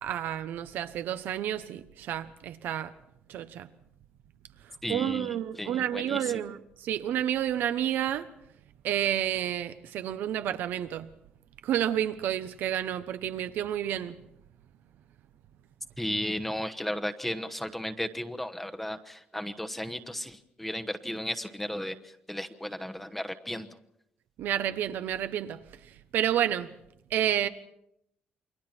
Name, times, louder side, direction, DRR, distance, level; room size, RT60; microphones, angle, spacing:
voice 1, 0.0-2.9 3.3-3.7 4.9-8.3 8.8-11.1 11.6-14.2 24.4-25.6 26.1-26.7 27.1-27.5, right 11 dB, 75° right, 1.0 m, -30 dB
voice 2, 4.8-6.4 16.0-22.0 22.3-23.7, left 1 dB, 5° left, 1.1 m, -34 dB
28.5 x 23.0 x 4.5 m
cardioid pair, 135°, 3 cm